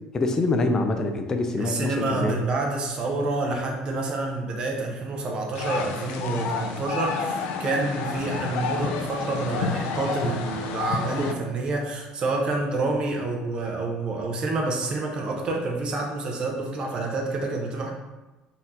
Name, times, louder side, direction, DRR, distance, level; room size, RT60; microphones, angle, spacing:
voice 1, 0.1-2.4, left 2 dB, 25° left, 5 dB, 0.5 m, -25 dB
voice 2, 1.6-17.9, right 2 dB, 40° right, 1 dB, 0.8 m, -28 dB
sound 1, 5.5-11.3, left 5 dB, 85° left, 0.5 m, -30 dB
4.2 x 2.8 x 3.8 m, 1.1 s
cardioid pair, 140°, 2 cm